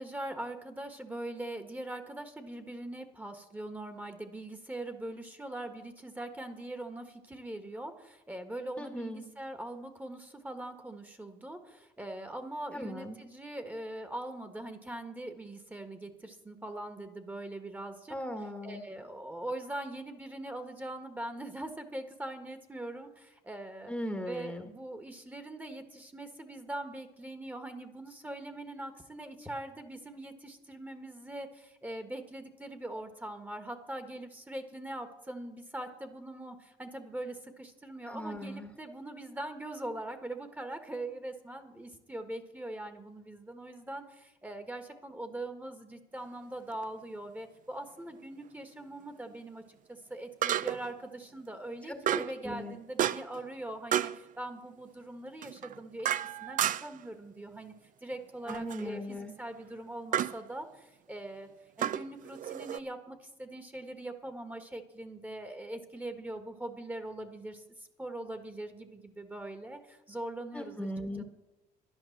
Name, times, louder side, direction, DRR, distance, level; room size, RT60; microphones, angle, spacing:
voice 1, 0.0-18.1 18.6-23.9 24.3-49.6 49.9-56.1 56.4-57.7 58.0-61.5 61.8-70.9 71.2-71.3, right 1 dB, 10° right, 8 dB, 1.4 m, -42 dB
voice 2, 8.8-9.3 12.7-13.2 18.1-18.8 23.9-24.7 38.1-38.7 51.9-52.7 58.5-59.3 70.5-71.2, equal, 5° left, 6 dB, 1.3 m, -38 dB
sound 1, 46.7-46.8 50.4-51.0 52.1-52.4 53.0-53.4 53.9-54.2 55.4-57.0 58.5-58.9 60.1-60.4 61.8-62.8, right 11 dB, 50° right, 0.5 m, -31 dB
11.0 x 10.5 x 7.2 m, 0.95 s
cardioid pair, 110°, 17 cm